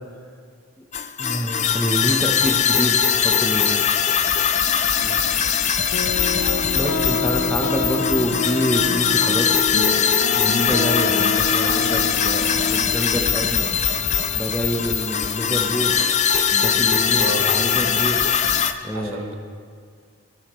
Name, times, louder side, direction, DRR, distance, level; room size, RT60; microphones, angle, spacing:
sound 1, 0.9-18.7, left 7 dB, 30° left, 0.4 m, -21 dB
voice 1, 1.2-3.9 6.7-13.8 14.3-16.0 16.5-18.2 18.8-19.2, equal, 10° left, 2 dB, 1.0 m, -26 dB
voice 2, 5.0-5.4 17.1-17.4 18.9-19.3, right 2 dB, 65° right, 3 dB, 1.2 m, -32 dB
sound 2, 5.9-13.5, left 3 dB, 70° left, 0.8 m, -27 dB
sound 3, 7.1-18.5, equal, 80° right, 2.0 m, -41 dB
21.5 x 11.5 x 3.2 m, 2.1 s
head